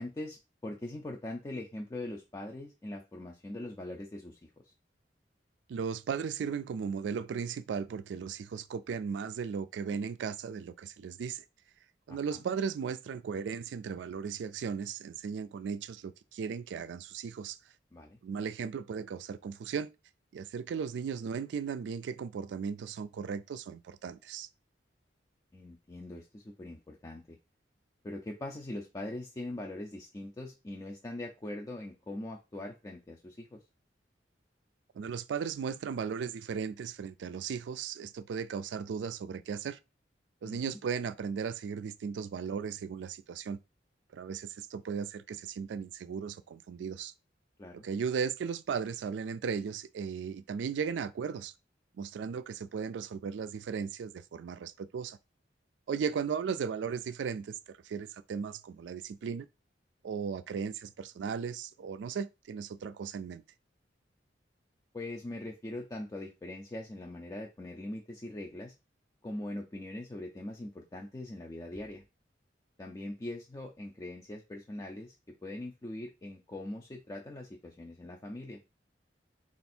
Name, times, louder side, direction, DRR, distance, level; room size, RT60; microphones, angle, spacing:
voice 1, 0.0-4.7 12.1-12.4 17.9-18.2 25.5-27.4 28.0-33.6 40.4-40.8 47.6-47.9 64.9-68.7 69.2-72.0 72.8-75.1 75.4-78.6, left 1 dB, 20° left, 0.4 m, -42 dB
voice 2, 5.7-11.4 12.1-17.6 18.2-19.9 20.3-24.5 34.9-39.8 40.4-43.6 44.1-47.1 47.7-51.5 52.0-55.2 55.9-59.5 60.0-63.4, right 6 dB, 85° right, 0.3 m, -36 dB
3.4 x 2.4 x 4.2 m
head